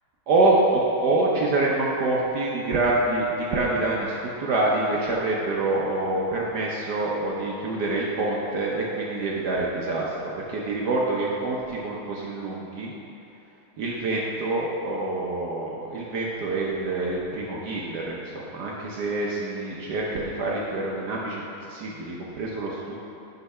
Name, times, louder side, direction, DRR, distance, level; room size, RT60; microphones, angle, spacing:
voice 1, 0.3-12.9 13.8-23.0, right 2 dB, 65° right, -4 dB, 1.2 m, -26 dB
9.2 x 4.0 x 5.5 m, 2.8 s
omnidirectional pair, 2.3 m